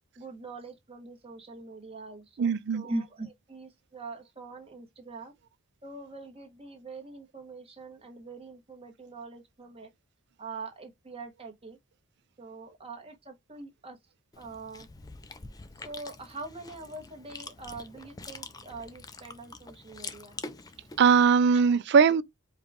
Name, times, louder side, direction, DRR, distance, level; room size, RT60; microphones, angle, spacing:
voice 1, 0.2-5.3 5.8-9.9 10.4-11.8 12.4-14.0 14.3-14.9 15.8-20.4 21.5-21.6 22.1-22.2, right 3 dB, 30° right, 1.1 m, -43 dB
voice 2, 2.4-2.8 21.0-22.2, right 6 dB, 55° right, 0.4 m, -20 dB
Chewing mastication, 14.3-21.2, left 3 dB, 20° left, 0.4 m, -45 dB
4.7 x 2.3 x 3.5 m
head